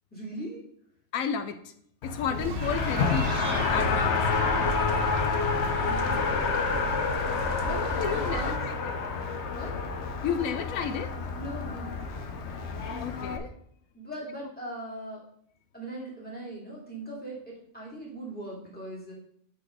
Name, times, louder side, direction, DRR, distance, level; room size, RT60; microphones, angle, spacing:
voice 1, 0.1-0.6 2.3-2.5 4.5-5.3 5.8-6.6 7.6-8.6 9.5-9.7 11.4-12.0 13.9-15.2 15.7-19.1, right 1 dB, 5° left, -5 dB, 2.3 m, -40 dB
voice 2, 1.1-1.6 2.0-4.2 7.7-9.0 10.2-11.1 13.0-13.5, left 7 dB, 85° left, 10 dB, 1.0 m, -32 dB
Race car auto racing, 2.0-13.4, left 5 dB, 60° left, 1.0 m, -29 dB
sound 1, 2.4-8.6, right 7 dB, 60° right, 0.7 m, -36 dB
8.3 x 4.2 x 4.8 m, 0.67 s
omnidirectional pair, 1.4 m